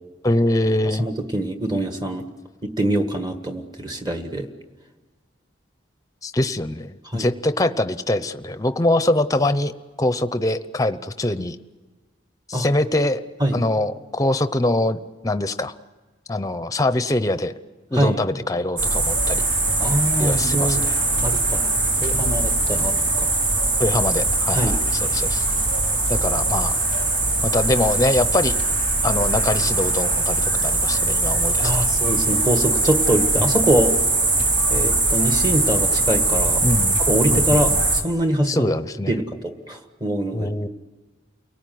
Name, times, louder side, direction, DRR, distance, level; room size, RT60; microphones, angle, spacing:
voice 1, 0.2-1.0 6.2-11.6 12.5-13.2 13.5-15.7 16.3-17.5 17.9-19.4 20.2-21.0 22.2-22.4 22.7-23.0 23.8-25.4 26.1-26.8 27.4-28.6 29.0-31.9 36.6-37.0 37.3-37.6 38.5-39.2 40.3-40.7, left 1 dB, 20° left, 12 dB, 0.8 m, -23 dB
voice 2, 1.0-2.2 2.6-4.5 7.1-7.3 12.5-12.7 13.4-13.6 17.9-18.2 19.8-20.8 21.2-21.6 22.0-23.3 24.5-24.8 31.6-33.9 34.7-36.6 37.1-38.7 39.1-39.2 39.7-40.5, right 1 dB, 25° right, 6 dB, 1.7 m, -23 dB
sound 1, 18.8-38.0, right 2 dB, 75° right, 4.1 m, -21 dB
29.5 x 18.5 x 9.4 m, 1.3 s
head